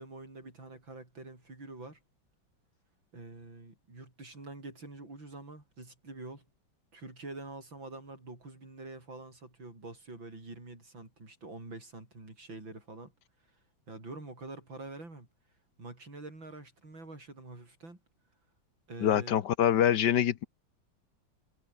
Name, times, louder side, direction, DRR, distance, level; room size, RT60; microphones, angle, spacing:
voice 1, 0.0-2.0 3.1-6.5 6.9-13.1 13.9-15.3 15.8-18.0 18.9-19.4, right 2 dB, 80° right, 7.9 m, -46 dB
voice 2, 19.0-20.5, left 10 dB, 65° left, 1.5 m, -25 dB
omnidirectional pair, 2.1 m